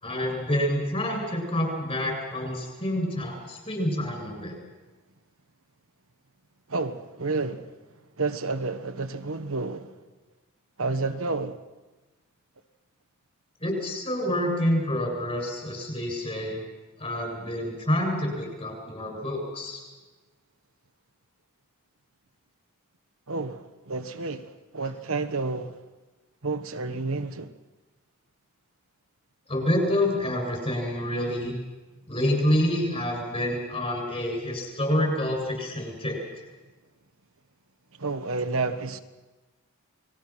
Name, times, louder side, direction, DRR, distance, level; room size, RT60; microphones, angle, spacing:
voice 1, 0.0-4.6 13.6-16.6 17.0-19.8 29.5-31.6 32.1-36.4, left 1 dB, 25° left, 7.8 m, -27 dB
voice 2, 6.7-7.7 8.2-9.9 10.8-11.6 23.3-25.8 26.4-27.5 38.0-39.0, right 3 dB, 65° right, 1.3 m, -30 dB
29.5 x 21.0 x 6.2 m
head